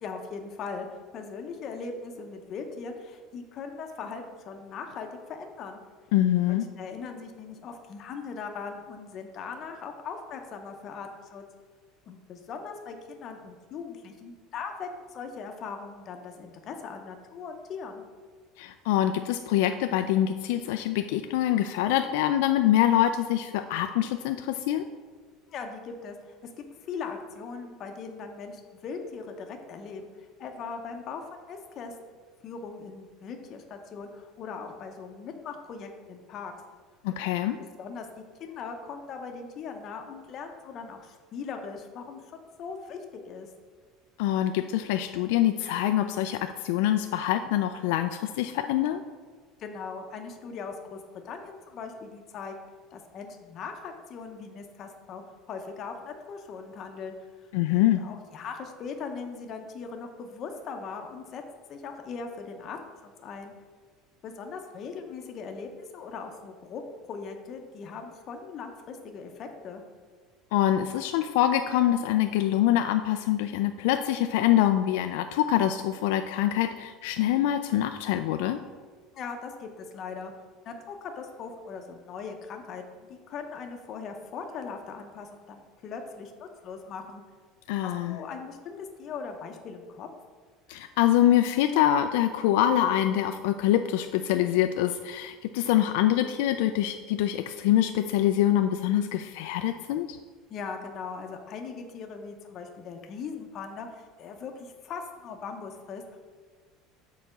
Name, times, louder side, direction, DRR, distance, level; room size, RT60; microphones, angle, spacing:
voice 1, 0.0-0.9 1.1-5.8 6.5-11.4 12.1-18.0 25.5-31.9 32.4-36.5 37.2-37.3 37.6-43.0 43.3-43.5 49.6-51.0 51.2-52.5 52.9-57.1 57.7-61.4 61.7-63.5 64.2-69.8 79.1-80.3 80.7-87.2 87.8-90.1 100.5-106.2, left 5 dB, 35° left, 4 dB, 0.7 m, -40 dB
voice 2, 6.1-6.7 18.6-24.9 37.0-37.6 44.2-49.0 57.5-58.0 70.5-78.6 87.7-88.2 90.7-100.2, left 12 dB, 80° left, 7 dB, 0.3 m, -25 dB
6.6 x 4.0 x 5.8 m, 1.5 s
cardioid pair, 165°, 0 cm